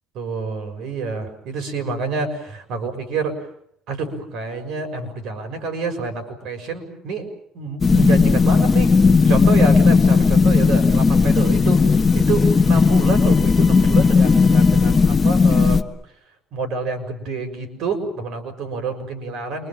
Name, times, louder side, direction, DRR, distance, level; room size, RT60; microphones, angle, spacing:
voice 1, 0.1-3.4 3.9-7.3 7.5-15.8 16.5-19.7, right 4 dB, 60° right, 6 dB, 6.3 m, -28 dB
sound 1, 7.8-15.8, left 4 dB, 20° left, 1.4 m, -15 dB
28.5 x 24.5 x 7.5 m, 0.71 s
cardioid pair, 135°, 0 cm